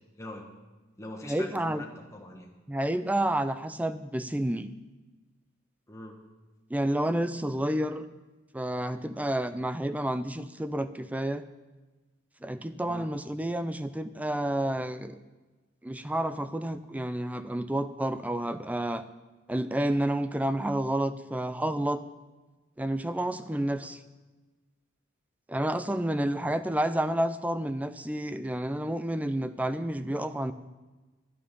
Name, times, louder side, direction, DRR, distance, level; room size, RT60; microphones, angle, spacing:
voice 1, 0.2-0.5 1.0-2.5 5.9-6.2 12.9-13.1 23.8-23.9 26.4-26.5, left 1 dB, 15° left, 0 dB, 1.6 m, -43 dB
voice 2, 1.3-1.8 2.7-4.7 6.7-8.1 8.5-11.4 12.4-15.2 15.8-19.0 19.5-22.0 22.8-24.0 25.5-30.5, right 1 dB, 5° right, 11 dB, 0.4 m, -30 dB
11.0 x 11.0 x 5.5 m, 1.2 s
head